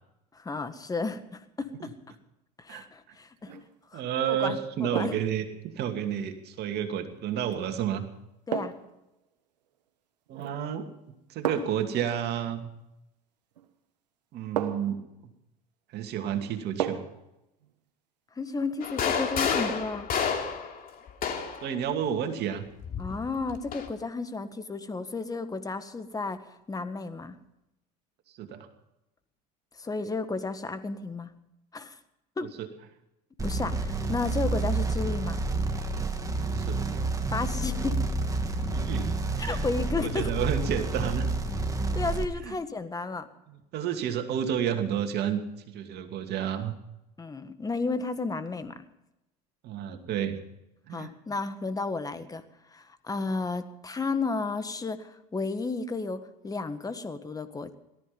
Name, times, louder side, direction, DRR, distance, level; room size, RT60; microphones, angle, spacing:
voice 1, 0.3-1.9 2.6-3.5 3.9-4.0 4.3-4.6 4.9-5.2 8.5-8.7 18.4-20.1 23.0-27.3 29.8-31.3 31.7-32.0 32.4-32.5 33.4-35.4 37.3-38.0 39.4-40.3 41.9-43.3 47.2-48.8 50.9-52.4 52.7-57.7, left 3 dB, 15° left, 10 dB, 1.6 m, -33 dB
sound 1, 3.4-3.7 4.9-5.4 7.4-7.6 8.5-9.0 10.3-10.7 11.4-11.9 13.6-13.7 14.6-15.0 16.8-17.2 17.6-17.7, right 9 dB, 90° right, 1.4 m, -33 dB
voice 2, 3.9-8.0 10.3-10.8 11.3-12.7 14.3-15.0 15.9-17.0 21.6-22.6 28.4-28.7 32.4-32.7 36.5-36.8 38.7-39.1 39.4-39.7 39.9-41.3 42.4-42.5 43.5-45.4 45.7-46.7 49.6-50.4 50.9-51.1, right 9 dB, 55° right, 5 dB, 2.6 m, -30 dB
sound 2, 18.8-21.7 22.8-23.9, left 6 dB, 45° left, 2.9 m, -30 dB
sound 3, 33.4-42.3, right 3 dB, 15° right, 2.3 m, -29 dB
18.0 x 14.0 x 5.4 m, 0.88 s
hypercardioid pair, 85°, 21 cm